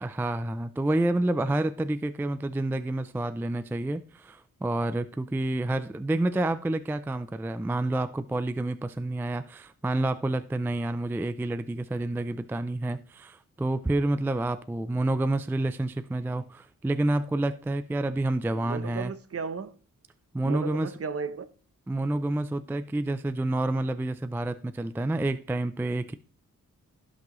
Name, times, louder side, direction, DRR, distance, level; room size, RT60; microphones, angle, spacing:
voice 1, 0.0-19.1 20.3-20.9 21.9-26.1, right 2 dB, 5° right, 0.3 m, -29 dB
voice 2, 18.6-19.7 20.4-21.5, right 5 dB, 45° right, 0.8 m, -34 dB
16.0 x 6.0 x 3.1 m
wide cardioid pair, 125°, 33 cm